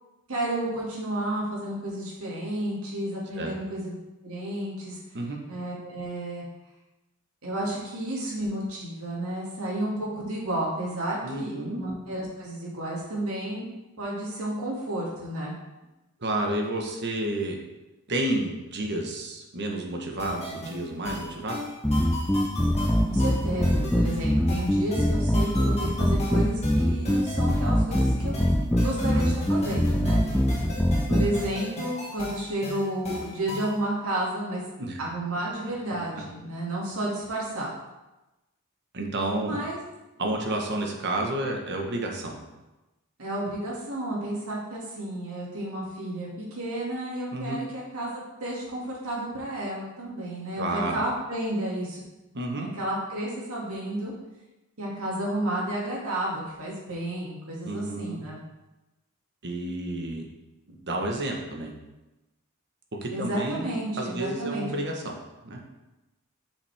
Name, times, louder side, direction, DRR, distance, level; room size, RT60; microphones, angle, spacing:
voice 1, 0.3-4.0 4.2-5.0 5.5-6.4 7.4-13.6 14.0-15.6 23.1-28.4 28.8-30.2 31.1-34.6 35.0-37.7 39.4-39.8 43.2-48.1 48.4-52.0 52.5-54.1 54.8-58.4 63.1-64.6, right 1 dB, 80° right, -5 dB, 2.4 m, -31 dB
voice 2, 11.2-11.8 16.2-17.6 18.1-21.6 29.0-29.3 34.8-35.0 35.9-36.0 38.9-39.6 40.2-42.4 47.3-47.6 50.6-51.0 52.3-52.7 57.6-58.2 59.4-60.3 60.7-61.7 63.0-65.2 65.4-65.6, right 1 dB, 55° right, 1 dB, 1.3 m, -30 dB
sound 1, 20.2-33.8, left 1 dB, 30° left, 1.9 m, -37 dB
sound 2, 21.8-31.3, equal, 5° left, 0.4 m, -23 dB
7.5 x 5.8 x 3.5 m, 1.0 s
head